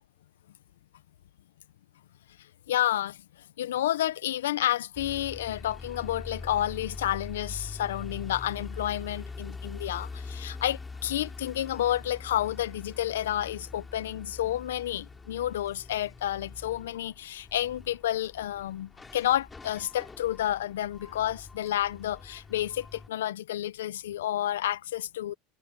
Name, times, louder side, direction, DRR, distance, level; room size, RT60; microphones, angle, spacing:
voice 1, 2.7-3.2 3.6-25.3, left 12 dB, 90° left, 0.6 m, -30 dB
sound 1, 5.0-23.1, left 4 dB, 15° left, 2.8 m, -43 dB
supercardioid pair, 105°, 0 cm